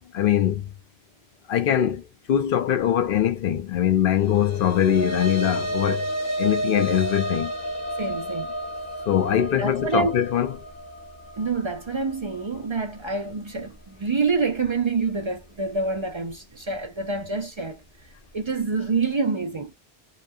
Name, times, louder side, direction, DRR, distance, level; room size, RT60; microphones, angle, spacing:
voice 1, 0.1-0.6 1.5-2.0 2.3-6.1 6.4-7.5 9.1-10.6, left 10 dB, 60° left, 0.8 m, -22 dB
sound 1, 4.2-12.8, right 1 dB, 25° left, 0.3 m, -31 dB
voice 2, 8.0-8.5 9.6-10.2 11.4-17.8 18.3-19.7, right 4 dB, 45° right, 0.4 m, -27 dB
3.0 x 2.1 x 2.2 m
omnidirectional pair, 1.1 m